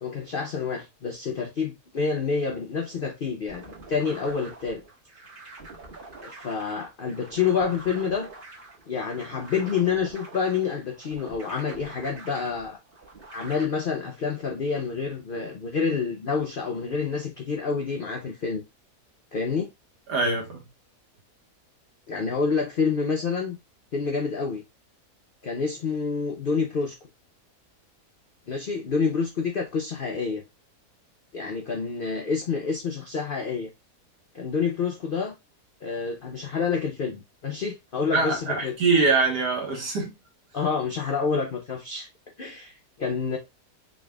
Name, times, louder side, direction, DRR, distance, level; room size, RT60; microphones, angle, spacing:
voice 1, 0.0-4.8 6.2-8.3 8.9-12.8 13.3-18.6 19.3-19.7 22.1-23.6 23.9-24.6 25.4-27.0 28.5-30.4 31.3-33.7 34.3-35.3 35.8-38.8 40.5-42.1 42.4-43.4, left 5 dB, 70° left, 0.5 m, -28 dB
sound 1, 3.5-13.6, right 3 dB, 35° right, 1.3 m, -45 dB
voice 2, 20.1-20.6 38.1-40.1, right 3 dB, 85° right, 1.9 m, -23 dB
4.9 x 3.3 x 2.2 m
omnidirectional pair, 1.7 m